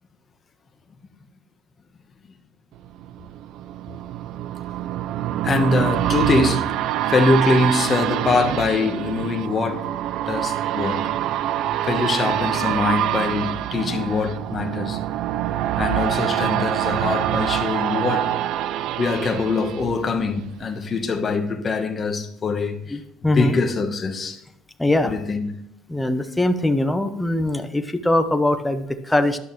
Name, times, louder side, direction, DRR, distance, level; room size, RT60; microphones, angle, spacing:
sound 1, 2.9-20.6 21.1-21.2, right 12 dB, 45° right, 0.3 m, -25 dB
voice 1, 5.4-6.7 7.1-9.9 10.3-11.1 11.8-15.0 15.8-18.3 19.0-24.4 25.0-25.6, left 3 dB, 20° left, 1.0 m, -23 dB
voice 2, 24.8-25.1 25.9-29.4, left 1 dB, 5° left, 0.6 m, -21 dB
12.5 x 10.5 x 3.1 m
cardioid pair, 180°, 0 cm